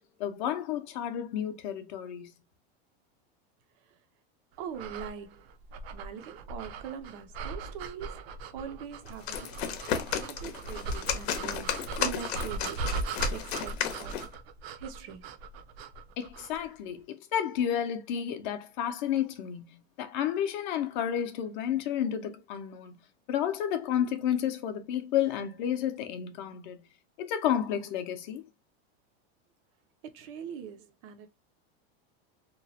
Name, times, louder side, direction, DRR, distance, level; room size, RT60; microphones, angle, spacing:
voice 1, 0.2-2.3 16.2-22.9 23.3-26.8 27.2-28.4, left 10 dB, 50° left, 0.6 m, -31 dB
voice 2, 4.6-5.4 5.9-14.3 14.8-15.3 30.0-31.3, right 7 dB, 30° right, 0.4 m, -43 dB
sound 1, 4.7-16.6, right 3 dB, 75° right, 0.6 m, -39 dB
sound 2, 9.1-14.3, left 9 dB, 85° left, 0.8 m, -34 dB
2.9 x 2.0 x 2.7 m
supercardioid pair, 175°, 31 cm